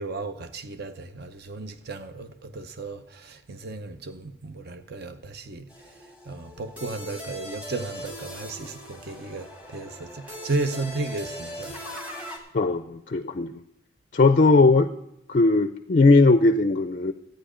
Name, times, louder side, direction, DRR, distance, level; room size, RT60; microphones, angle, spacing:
voice 1, 0.0-5.9 6.3-12.0, right 3 dB, 50° right, 0.7 m, -34 dB
sound 1, 5.7-12.4, equal, 5° right, 1.5 m, -40 dB
voice 2, 12.5-13.5 14.1-14.9 15.3-17.1, left 3 dB, 40° left, 0.4 m, -18 dB
12.5 x 9.1 x 5.0 m
head